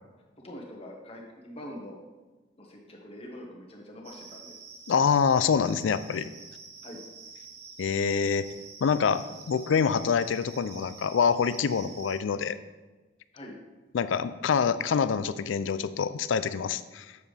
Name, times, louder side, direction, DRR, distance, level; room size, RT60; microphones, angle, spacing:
voice 1, 0.4-2.0 2.6-4.6 6.8-7.0 13.3-13.6, left 1 dB, 30° left, -1 dB, 1.4 m, -44 dB
sound 1, 4.0-12.2, right 4 dB, 60° right, 1.0 m, -47 dB
voice 2, 4.9-6.3 7.8-8.5 8.8-12.6 13.9-17.2, left 6 dB, 85° left, 14 dB, 0.4 m, -26 dB
8.0 x 7.1 x 3.3 m, 1.2 s
head